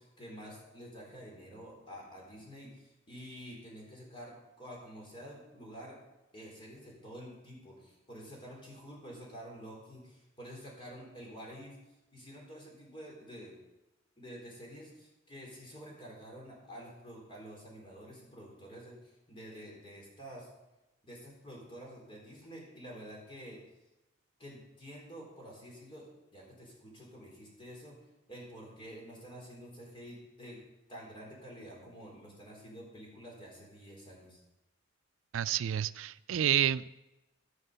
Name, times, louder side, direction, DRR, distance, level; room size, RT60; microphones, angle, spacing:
voice 1, 0.0-6.0 6.3-11.8 12.1-13.6 14.2-20.5 21.0-23.6 24.4-27.9 28.3-30.6 30.9-34.4, equal, 25° left, -2 dB, 4.2 m, -49 dB
voice 2, 35.3-37.0, right 10 dB, 85° right, 16 dB, 0.4 m, -29 dB
14.5 x 6.5 x 6.8 m, 0.99 s
head